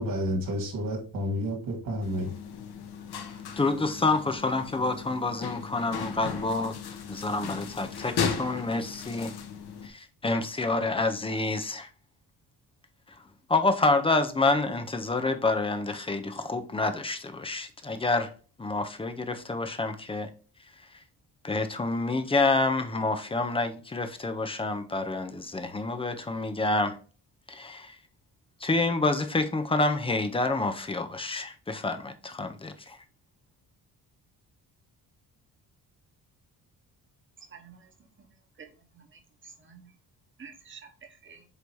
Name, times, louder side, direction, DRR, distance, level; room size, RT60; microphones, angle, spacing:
voice 1, 0.0-2.3, equal, 55° right, 2.6 m, -30 dB
sound 1, 2.0-9.9, left 6 dB, 70° left, 1.1 m, -36 dB
voice 2, 3.6-6.8 7.1-9.3 9.8-11.9 13.5-18.3 18.6-20.3 21.4-27.0 27.5-28.0 28.6-33.0, left 3 dB, 15° left, 0.6 m, -28 dB
voice 3, 37.5-37.9 38.2-38.3 38.9-39.9 40.4-41.4, right 6 dB, 30° right, 1.1 m, -50 dB
8.1 x 2.8 x 4.6 m
wide cardioid pair, 175°, 40 cm